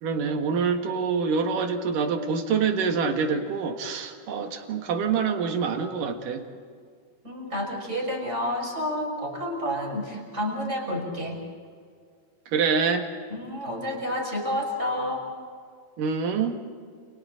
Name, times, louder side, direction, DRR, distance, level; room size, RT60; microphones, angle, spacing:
voice 1, 0.0-6.4 12.5-13.0 16.0-16.6, right 5 dB, 60° right, 4 dB, 3.1 m, -26 dB
voice 2, 7.2-11.4 13.3-15.3, left 1 dB, 15° right, 0 dB, 5.9 m, -30 dB
30.0 x 29.5 x 3.9 m, 2.1 s
omnidirectional pair, 4.7 m